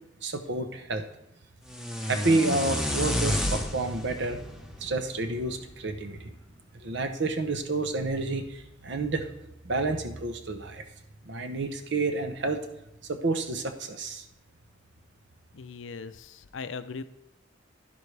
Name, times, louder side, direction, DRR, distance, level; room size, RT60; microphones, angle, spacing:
voice 1, 0.2-1.1 2.1-4.4 4.8-6.3 6.8-9.3 9.6-10.8 11.2-12.6 13.0-14.2, right 3 dB, 60° right, 8 dB, 0.9 m, -29 dB
sound 1, 1.7-5.8, equal, 5° right, 0.9 m, -31 dB
voice 2, 15.5-17.0, left 5 dB, 70° left, 12 dB, 0.5 m, -39 dB
11.0 x 10.5 x 3.4 m, 0.87 s
head